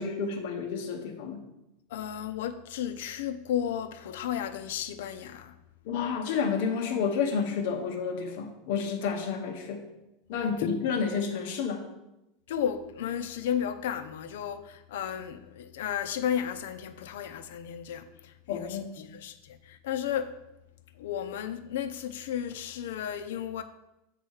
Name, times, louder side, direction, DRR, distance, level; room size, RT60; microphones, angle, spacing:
voice 1, 0.0-1.4 5.8-9.8 10.3-11.9 18.5-19.1, left 6 dB, 60° left, 1.0 m, -30 dB
voice 2, 1.9-5.5 10.3-10.5 12.5-20.4 20.9-23.6, left 9 dB, 80° left, 0.6 m, -33 dB
8.1 x 3.1 x 6.3 m
supercardioid pair, 165°, 0 cm